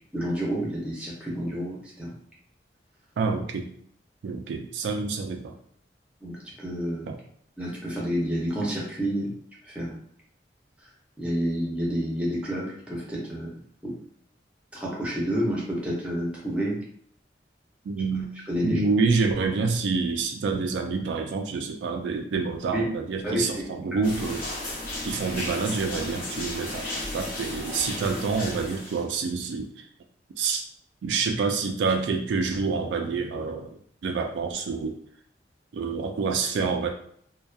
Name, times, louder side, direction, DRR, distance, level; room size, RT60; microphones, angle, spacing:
voice 1, 0.1-2.1 6.2-7.1 7.6-9.3 9.7-10.0 11.2-13.9 14.7-16.8 18.5-18.8 22.7-22.8 23.2-23.7, equal, 5° right, -4 dB, 0.6 m, -29 dB
voice 2, 3.2-3.7 4.2-5.6 7.1-7.2 17.9-18.3 18.6-24.5 25.0-29.9 30.4-30.6 31.0-35.0 35.7-36.9, right 4 dB, 80° right, 4 dB, 0.3 m, -27 dB
sound 1, 24.0-29.0, left 1 dB, 50° left, 0.7 m, -34 dB
2.7 x 2.1 x 2.2 m, 0.64 s
head